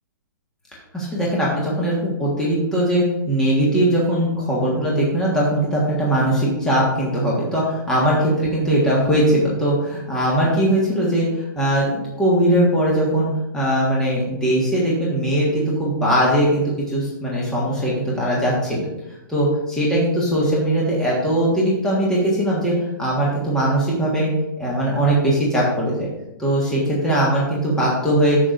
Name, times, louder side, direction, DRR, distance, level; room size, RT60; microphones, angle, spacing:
voice 1, 0.9-11.9 12.2-13.3 13.5-18.9 19.3-22.7 23.0-24.3 24.6-26.1 26.4-28.4, right 1 dB, 5° left, -6 dB, 1.6 m, -20 dB
11.0 x 7.7 x 2.6 m, 0.91 s
hypercardioid pair, 165°, 11 cm